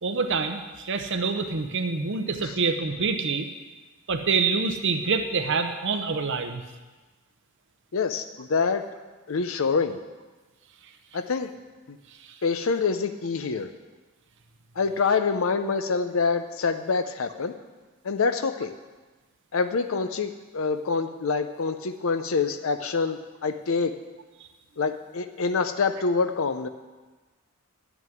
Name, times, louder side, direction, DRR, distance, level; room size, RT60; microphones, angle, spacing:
voice 1, 0.0-3.5 4.1-6.6 12.1-12.4 24.4-24.5, right 4 dB, 60° right, 6 dB, 0.8 m, -26 dB
voice 2, 7.9-8.8 9.3-10.0 11.1-11.5 11.9-12.0 12.4-13.7 14.8-17.5 18.0-18.7 19.5-23.9 24.8-26.7, left 4 dB, 70° left, 9 dB, 0.6 m, -26 dB
11.0 x 6.1 x 9.1 m, 1.2 s
head